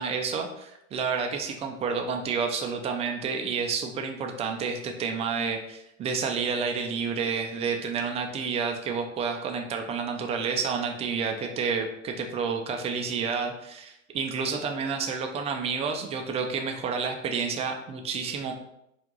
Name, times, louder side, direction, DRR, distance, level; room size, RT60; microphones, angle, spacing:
voice 1, 0.0-18.5, right 5 dB, 15° right, 4 dB, 0.4 m, -30 dB
4.5 x 2.5 x 3.8 m, 0.80 s
hypercardioid pair, 90°, 40 cm